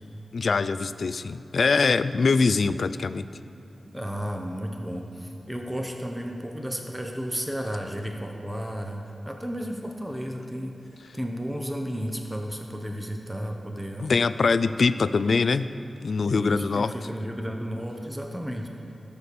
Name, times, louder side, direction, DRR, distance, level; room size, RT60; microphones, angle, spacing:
voice 1, 0.3-3.3 14.0-15.7 16.0-16.9, left 4 dB, 70° left, 14 dB, 0.3 m, -23 dB
voice 2, 3.9-10.8 11.1-14.1 16.2-18.7, equal, 10° right, 2 dB, 0.8 m, -33 dB
17.0 x 6.8 x 4.2 m, 2.8 s
wide cardioid pair, 95°, 0 cm